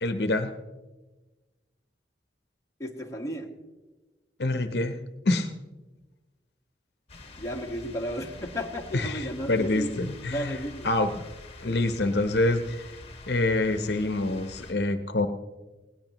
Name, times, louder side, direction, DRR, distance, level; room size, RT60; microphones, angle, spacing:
voice 1, 0.0-0.5 4.4-5.0 5.2-5.5 8.9-10.6 10.8-11.2 11.6-12.8 13.3-15.3, left 2 dB, 65° left, 8 dB, 0.8 m, -26 dB
voice 2, 2.8-3.5 7.4-10.0 10.3-10.9, equal, 20° left, 0 dB, 1.4 m, -33 dB
sound 1, 7.1-14.7, left 3 dB, 35° left, 1.8 m, -46 dB
19.5 x 17.5 x 3.0 m, 1.2 s
head